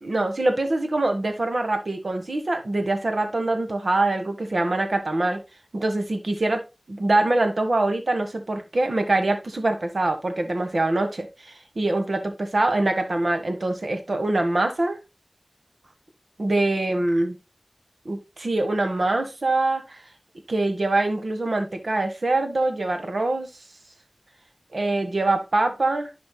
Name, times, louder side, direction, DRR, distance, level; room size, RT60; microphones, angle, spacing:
voice 1, 0.0-5.4 5.7-6.6 6.9-15.0 16.4-17.4 18.0-20.0 20.5-23.5 24.7-26.1, right 2 dB, 80° right, 6 dB, 1.5 m, -24 dB
11.0 x 5.1 x 2.3 m, 0.26 s
wide cardioid pair, 50°, 0 cm